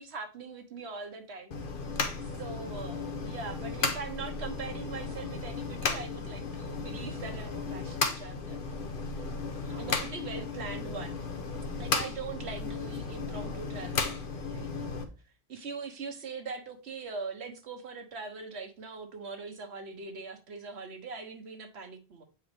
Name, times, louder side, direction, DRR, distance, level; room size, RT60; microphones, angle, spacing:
voice 1, 0.0-1.6 2.2-8.6 9.2-11.2 11.8-15.0 15.5-22.2, right 4 dB, 80° right, 1.4 m, -41 dB
sound 1, 1.5-15.0, left 4 dB, 55° left, 1.2 m, -35 dB
9.0 x 4.5 x 3.5 m
omnidirectional pair, 1.1 m